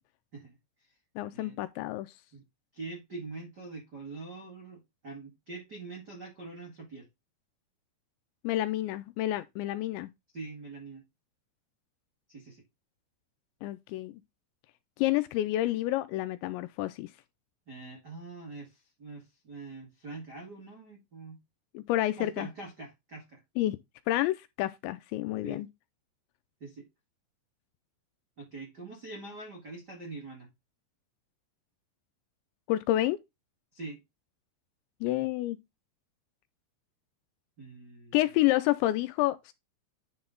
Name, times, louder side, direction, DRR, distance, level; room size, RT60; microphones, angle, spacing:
voice 1, 1.2-2.1 8.4-10.1 13.6-14.2 15.0-17.1 21.7-22.5 23.6-23.8 24.1-25.7 32.7-33.2 35.0-35.6 38.1-39.5, left 15 dB, 85° left, 2.7 m, -29 dB
voice 2, 2.7-7.1 10.3-11.0 12.3-12.6 17.7-21.4 22.2-23.4 25.4-25.6 26.6-26.9 28.4-30.5 33.7-34.0 37.6-38.1, right 3 dB, 70° right, 0.9 m, -44 dB
10.5 x 4.0 x 3.7 m
omnidirectional pair, 5.5 m